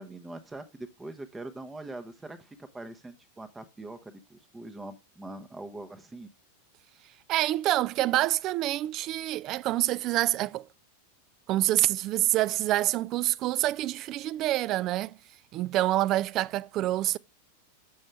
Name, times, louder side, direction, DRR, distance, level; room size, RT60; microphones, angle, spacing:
voice 1, 0.0-6.3, right 2 dB, 10° right, 0.8 m, -43 dB
voice 2, 7.3-10.7 11.5-15.2 15.5-17.2, right 15 dB, 35° right, 0.3 m, -27 dB
7.5 x 6.2 x 3.2 m
figure-of-eight pair, 90°, 0 cm